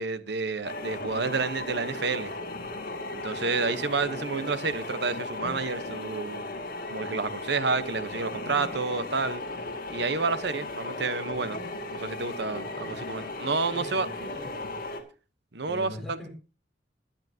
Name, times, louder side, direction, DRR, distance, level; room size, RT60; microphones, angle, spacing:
voice 1, 0.0-2.3 3.1-6.4 6.9-9.4 9.9-11.6 11.9-14.1 15.5-16.3, right 4 dB, 65° right, 1.0 m, -30 dB
sound 1, 0.6-15.0, left 2 dB, 55° left, 2.2 m, -36 dB
voice 2, 13.7-14.7 15.6-16.3, equal, ahead, 5.8 m, -41 dB
18.5 x 10.5 x 2.9 m
head